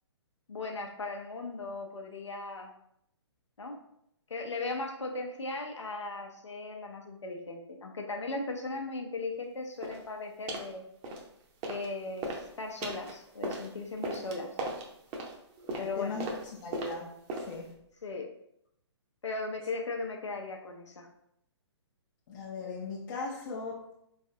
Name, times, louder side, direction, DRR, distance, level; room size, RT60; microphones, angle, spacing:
voice 1, 0.5-2.7 3.6-3.8 4.3-10.8 11.7-12.3 12.6-14.6 15.8-16.2 18.0-18.3 19.2-21.1, left 3 dB, 85° left, 2 dB, 0.6 m, -37 dB
sound 1, 9.8-10.0 10.5-10.7 11.0-11.9 12.2-17.7, right 2 dB, 25° right, 0.6 m, -38 dB
voice 2, 16.0-17.7 22.3-24.0, left 4 dB, 45° left, -2 dB, 0.5 m, -39 dB
3.6 x 3.2 x 2.6 m, 0.75 s
figure-of-eight pair, 130°, 15 cm